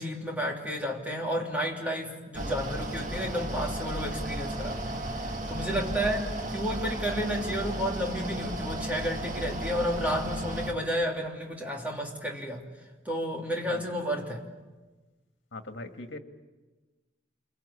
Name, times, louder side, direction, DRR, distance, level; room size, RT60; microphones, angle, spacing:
voice 1, 0.0-12.6 13.0-14.4, equal, 10° right, 0 dB, 3.1 m, -31 dB
Mechanical fan, 2.3-10.7, right 1 dB, 40° right, 2.0 m, -34 dB
voice 2, 15.5-16.2, left 2 dB, 80° left, 6 dB, 2.0 m, -40 dB
28.5 x 23.0 x 8.6 m, 1.2 s
head